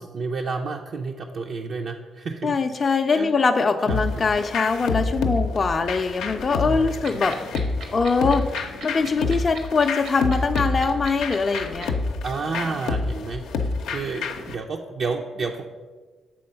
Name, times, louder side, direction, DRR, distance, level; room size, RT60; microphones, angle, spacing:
voice 1, 0.0-2.6 3.1-3.4 3.9-4.3 6.6-7.0 12.2-15.6, right 4 dB, 65° right, 1 dB, 0.5 m, -31 dB
voice 2, 2.4-7.4 7.9-11.9, left 4 dB, 40° left, 5 dB, 0.4 m, -22 dB
sound 1, 3.9-14.6, left 3 dB, 85° left, 0.6 m, -28 dB
sound 2, 7.0-11.9, right 5 dB, 85° right, 1.2 m, -37 dB
7.6 x 3.8 x 5.4 m, 1.4 s
cardioid pair, 70°, 0 cm